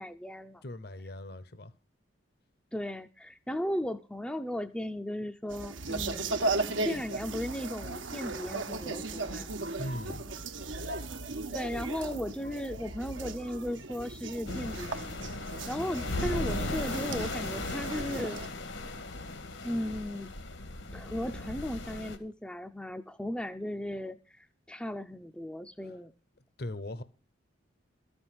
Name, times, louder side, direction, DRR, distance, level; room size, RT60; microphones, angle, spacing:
voice 1, 0.0-0.6 2.7-6.3 6.8-9.5 11.5-15.0 15.7-18.4 19.6-20.3 20.9-26.1, left 1 dB, 5° left, 0.5 m, -36 dB
voice 2, 0.6-1.7 9.8-10.2 26.6-27.0, left 1 dB, 55° left, 0.9 m, -39 dB
sound 1, 5.5-18.5, right 3 dB, 85° right, 1.1 m, -36 dB
sound 2, 14.5-22.2, left 2 dB, 80° left, 1.9 m, -37 dB
13.5 x 6.2 x 7.6 m
head